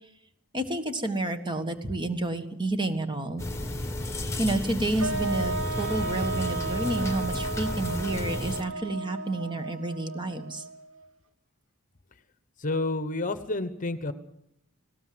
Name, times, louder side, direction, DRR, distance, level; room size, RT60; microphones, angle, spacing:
voice 1, 0.5-3.4 4.4-10.6, right 2 dB, 20° right, 7 dB, 1.6 m, -30 dB
sound 1, 3.4-8.6, left 1 dB, 15° left, 1.7 m, -32 dB
sound 2, 5.0-11.1, right 3 dB, 80° right, 2.1 m, -34 dB
voice 2, 12.6-14.1, left 2 dB, 40° left, 12 dB, 1.0 m, -29 dB
19.5 x 17.5 x 7.8 m, 0.75 s
head